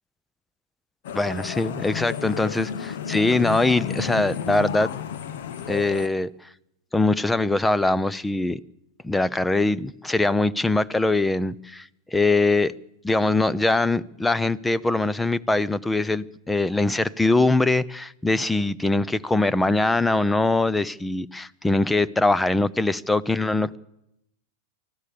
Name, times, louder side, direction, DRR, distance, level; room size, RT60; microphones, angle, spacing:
sound 1, 1.0-6.1, left 8 dB, 70° left, 1.4 m, -32 dB
voice 1, 1.1-4.9 5.7-6.3 6.9-8.6 9.0-12.7 13.0-23.8, left 2 dB, 10° left, 19 dB, 0.7 m, -22 dB
24.5 x 15.5 x 7.0 m, 0.85 s
hypercardioid pair, 110°, 0 cm